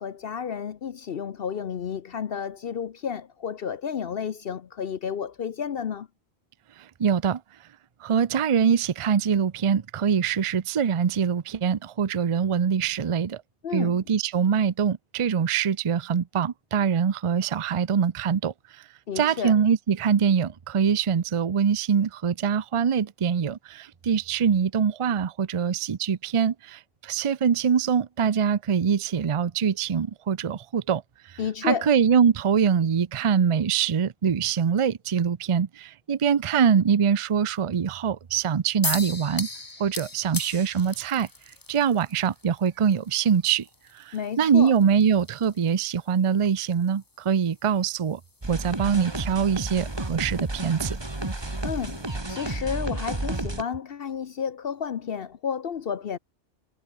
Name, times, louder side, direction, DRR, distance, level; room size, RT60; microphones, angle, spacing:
voice 1, 0.0-6.1 13.6-14.0 19.1-19.6 31.4-31.9 44.1-44.7 51.6-56.2, left 7 dB, 55° left, 0.9 m, -31 dB
voice 2, 6.8-7.4 8.0-13.4 13.7-18.5 19.2-31.0 31.3-39.5 39.8-41.3 41.7-43.7 43.9-48.2 48.5-51.0, right 7 dB, 40° right, 0.5 m, -24 dB
sound 1, 38.8-52.2, left 2 dB, 20° left, 1.1 m, -40 dB
sound 2, 48.4-53.6, right 2 dB, 20° right, 2.1 m, -31 dB
omnidirectional pair, 1.2 m